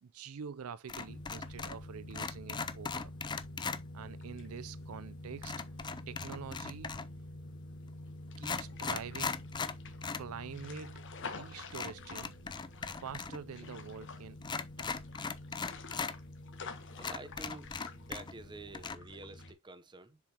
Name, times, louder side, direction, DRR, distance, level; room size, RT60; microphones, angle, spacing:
voice 1, 0.0-3.1 3.9-5.6 6.1-7.0 8.4-9.4 10.1-12.4 12.9-15.0, right 6 dB, 80° right, 0.4 m, -46 dB
sound 1, 0.9-1.8 2.1-3.8 5.4-7.2 7.9-8.0 8.3-10.3 10.6-10.7 11.7-13.4 13.6-13.7 14.4-16.1 16.6-16.7 17.0-18.5 18.7-18.9, left 5 dB, 20° left, 0.4 m, -39 dB
sound 2, 1.1-19.5, left 2 dB, 60° left, 1.2 m, -47 dB
voice 2, 17.0-20.2, right 3 dB, 20° right, 0.8 m, -49 dB
6.9 x 5.1 x 2.9 m
head